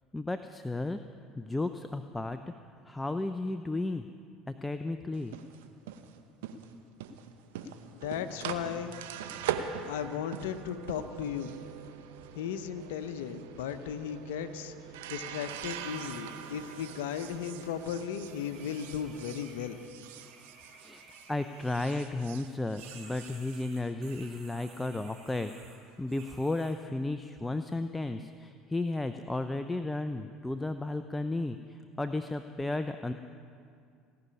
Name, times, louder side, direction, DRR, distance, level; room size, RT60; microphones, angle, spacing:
voice 1, 0.1-1.0 1.4-2.4 2.8-4.1 4.6-5.3 20.8-25.5 26.0-33.1, left 2 dB, 10° left, 9 dB, 0.6 m, -33 dB
sound 1, 5.1-21.3 21.6-24.2, right 8 dB, 75° right, 0.8 m, -42 dB
voice 2, 7.9-8.9 9.8-11.5 12.3-14.7 15.1-19.8, left 8 dB, 75° left, 8 dB, 0.8 m, -36 dB
sound 2, 15.5-22.5 22.8-26.8, right 5 dB, 55° right, 2.8 m, -55 dB
18.0 x 6.8 x 9.8 m, 2.3 s
hypercardioid pair, 70°, 0 cm